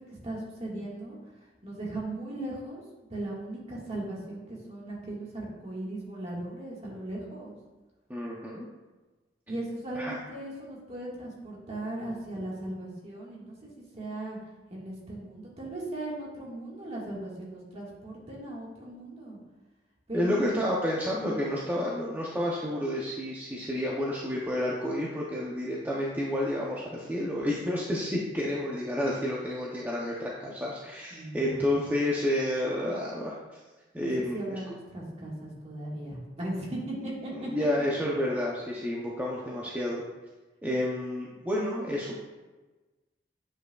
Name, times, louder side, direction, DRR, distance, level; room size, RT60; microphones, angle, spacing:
voice 1, 0.1-1.2 1.6-2.8 3.1-7.6 9.5-14.4 14.7-19.4 20.1-20.4 31.1-31.8 34.0-37.5, right 1 dB, 35° right, -4 dB, 1.7 m, -38 dB
voice 2, 8.1-8.7 9.9-10.2 20.1-33.6 33.9-34.6 37.4-40.0 40.6-42.1, left 1 dB, 10° right, -5 dB, 0.7 m, -30 dB
8.7 x 5.1 x 2.3 m, 1.2 s
head